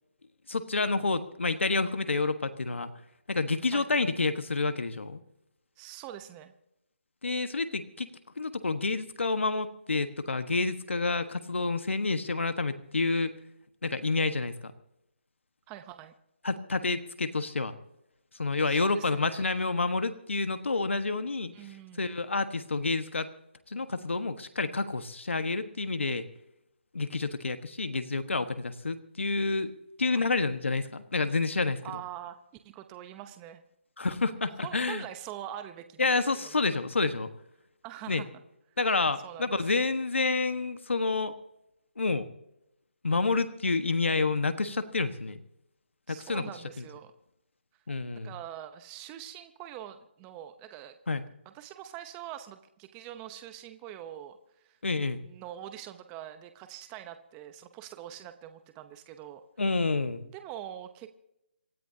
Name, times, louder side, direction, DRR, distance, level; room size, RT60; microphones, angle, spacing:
voice 1, 0.5-2.9 3.3-5.2 7.2-8.1 8.4-13.3 13.8-14.7 16.4-17.7 18.4-21.5 22.0-23.3 23.7-26.2 26.9-29.7 30.0-31.8 34.0-35.0 36.0-37.3 38.1-38.2 38.8-41.3 42.0-42.3 43.0-45.4 46.1-46.4 46.8-46.9 47.9-48.3 51.1-51.2 54.8-55.2 59.6-60.2, left 3 dB, 90° left, 9 dB, 1.4 m, -29 dB
voice 2, 5.8-6.5 15.7-16.1 18.7-19.4 21.5-22.1 30.1-30.3 31.8-32.4 32.6-33.6 34.6-36.6 37.8-38.3 39.2-39.6 46.1-47.1 48.1-50.9 51.4-54.8 55.1-59.4 60.2-61.2, right 11 dB, 15° right, 9 dB, 0.8 m, -44 dB
27.5 x 14.0 x 2.8 m, 0.84 s
hypercardioid pair, 160°, 6 cm